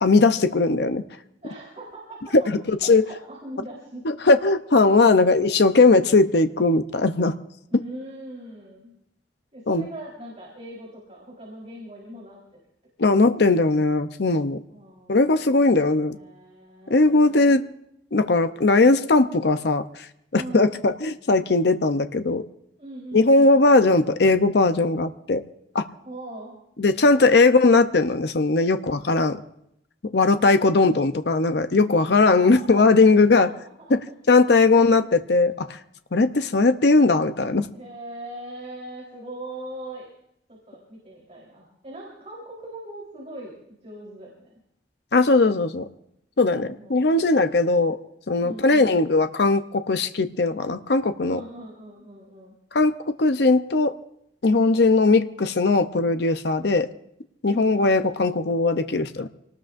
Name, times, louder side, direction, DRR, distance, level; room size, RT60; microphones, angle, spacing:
voice 1, 0.0-1.0 2.7-3.0 4.1-7.3 9.7-9.9 13.0-14.6 15.1-16.2 16.9-17.6 18.1-19.8 20.3-22.4 23.1-25.4 25.7-25.9 26.8-29.4 30.0-33.5 33.9-34.0 34.3-35.0 35.3-35.8 36.1-37.7 45.1-45.8 46.4-48.0 48.3-51.4 52.7-54.0 54.4-56.9 57.4-59.3, left 3 dB, 65° left, 9 dB, 0.7 m, -19 dB
voice 2, 1.4-2.5 2.8-4.1 5.1-5.2 7.7-9.0 9.5-12.4 14.7-17.5 20.3-20.7 22.8-23.6 26.0-26.6 31.9-32.8 33.4-33.5 34.0-34.1 34.8-35.0 37.7-40.1 40.5-43.6 43.8-44.5 46.5-47.3 48.4-49.1 51.3-52.5 57.5-58.4, right 1 dB, 35° right, -3 dB, 3.8 m, -40 dB
26.5 x 19.0 x 2.6 m, 0.76 s
head